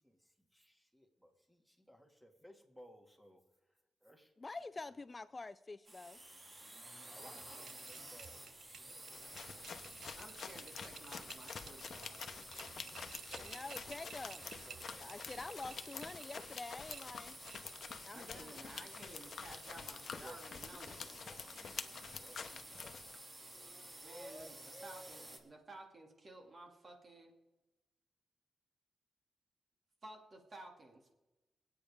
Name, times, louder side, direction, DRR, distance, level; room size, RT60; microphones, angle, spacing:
voice 1, 0.5-3.4 4.0-4.3 7.1-9.3 13.0-15.1 15.4-16.0 19.9-23.2 23.5-25.3, equal, 5° right, 3 dB, 2.3 m, -59 dB
voice 2, 4.4-6.2 12.4-12.5 13.4-14.4 15.0-17.4 18.0-18.6, left 3 dB, 35° left, 14 dB, 0.4 m, -47 dB
sound 1, 5.8-25.4, right 1 dB, 35° right, 2.3 m, -53 dB
sound 2, 7.4-16.4 16.9-17.9, right 7 dB, 85° right, 0.5 m, -55 dB
sound 3, 9.1-23.2, left 6 dB, 70° left, 0.9 m, -48 dB
voice 3, 10.1-12.2 18.1-20.9 24.0-27.3 30.0-31.1, right 2 dB, 50° right, 2 dB, 2.7 m, -54 dB
26.0 x 8.6 x 3.7 m, 1.1 s
cardioid pair, 75°, 0 cm